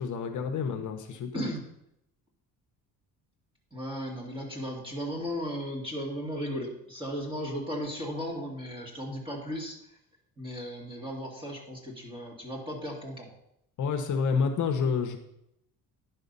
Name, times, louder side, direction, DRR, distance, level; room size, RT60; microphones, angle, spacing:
voice 1, 0.0-1.4 13.8-15.2, left 5 dB, 50° left, 5 dB, 0.9 m, -29 dB
voice 2, 3.7-10.0 10.4-13.3, equal, 15° right, -1 dB, 2.0 m, -36 dB
10.5 x 5.6 x 5.4 m, 0.80 s
cardioid pair, 160°, 37 cm